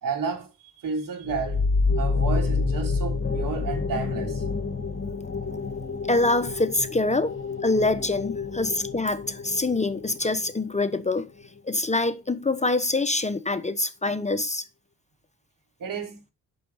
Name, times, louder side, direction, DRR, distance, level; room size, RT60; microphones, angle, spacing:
voice 1, 0.0-1.6 1.9-4.4 15.8-16.2, right 5 dB, 75° right, 3.2 m, -31 dB
sound 1, 1.2-10.6, left 4 dB, 40° left, 1.9 m, -28 dB
voice 2, 6.1-7.4 7.6-11.3 11.6-14.6, left 2 dB, 20° left, 0.9 m, -25 dB
8.6 x 6.4 x 5.6 m
cardioid pair, 75°, 33 cm